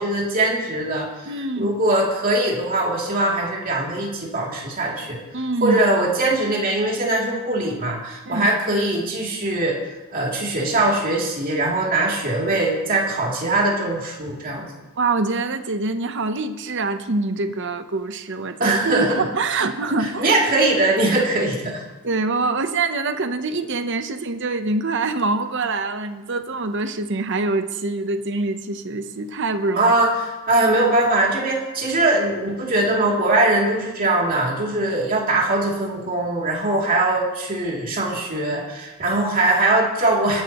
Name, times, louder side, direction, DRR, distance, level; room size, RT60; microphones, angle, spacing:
voice 1, 0.0-5.2 5.6-9.8 10.1-14.7 18.6-19.2 19.5-19.6 20.0-21.8 29.8-40.4, right 2 dB, 40° right, -3 dB, 2.9 m, -21 dB
voice 2, 1.3-1.7 5.3-5.8 8.3-8.5 15.0-20.3 22.0-29.9, right 3 dB, 55° right, 9 dB, 0.9 m, -25 dB
21.5 x 11.5 x 3.1 m, 1.1 s
head